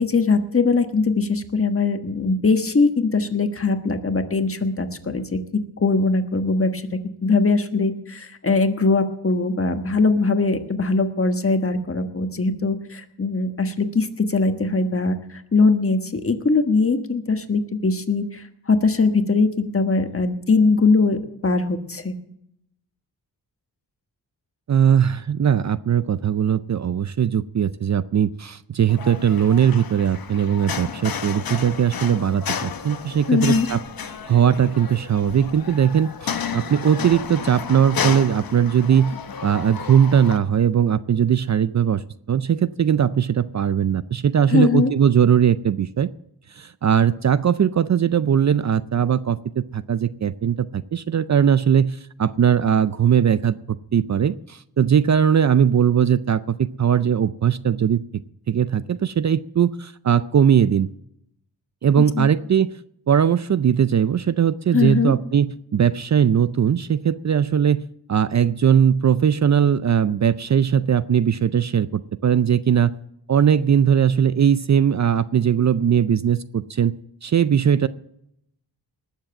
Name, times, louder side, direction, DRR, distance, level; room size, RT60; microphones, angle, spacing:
voice 1, 0.0-6.9 7.2-22.2 33.3-33.7 44.5-44.9 62.0-62.3 64.7-65.1, left 3 dB, 35° left, 7 dB, 1.4 m, -21 dB
voice 2, 24.7-33.8 34.3-39.1 39.4-42.0 42.3-46.1 46.6-58.0 58.5-60.9 61.8-62.7 63.1-67.8 68.1-72.9 73.3-76.9 77.2-77.9, right 8 dB, 45° right, 16 dB, 0.5 m, -19 dB
sound 1, 28.9-40.4, left 7 dB, 65° left, 1.1 m, -32 dB
19.5 x 7.5 x 7.7 m, 0.78 s
wide cardioid pair, 95°, 39 cm